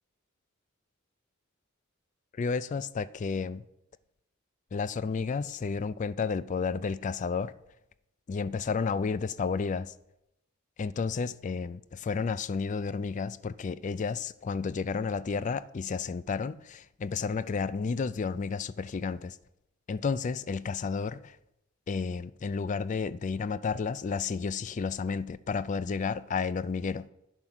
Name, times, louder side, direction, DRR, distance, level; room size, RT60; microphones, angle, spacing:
voice 1, 2.4-3.6 4.7-7.5 8.3-9.9 10.8-19.4 19.9-21.4 21.9-27.1, left 5 dB, 35° left, 0.3 m, -31 dB
10.0 x 7.5 x 5.9 m
head